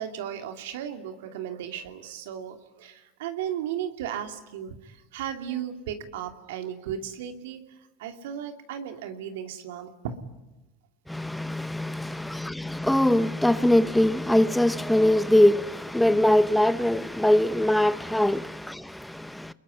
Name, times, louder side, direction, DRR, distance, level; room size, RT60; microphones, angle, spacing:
voice 1, 0.0-7.6 8.0-9.9 11.9-12.2 18.3-18.4, right 9 dB, 75° right, 2.7 m, -35 dB
voice 2, 11.1-18.8 19.2-19.5, left 1 dB, 5° left, 0.9 m, -22 dB
28.0 x 22.0 x 9.8 m
hypercardioid pair, 80°, 0 cm